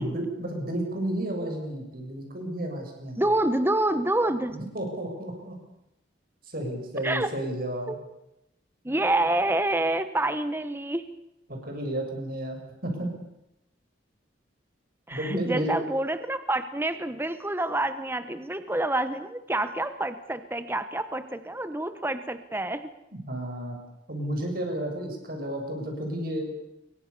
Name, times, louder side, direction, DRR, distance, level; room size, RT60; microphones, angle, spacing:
voice 1, 0.0-3.2 4.5-5.6 6.5-8.0 11.5-12.6 12.8-13.1 15.1-15.7 23.1-23.8 24.1-26.5, right 1 dB, 50° right, 3 dB, 7.3 m, -32 dB
voice 2, 3.2-4.6 7.0-7.3 7.9-8.0 8.8-11.0 15.1-22.9, right 1 dB, 10° right, 10 dB, 1.2 m, -27 dB
28.0 x 23.5 x 7.0 m, 0.87 s
head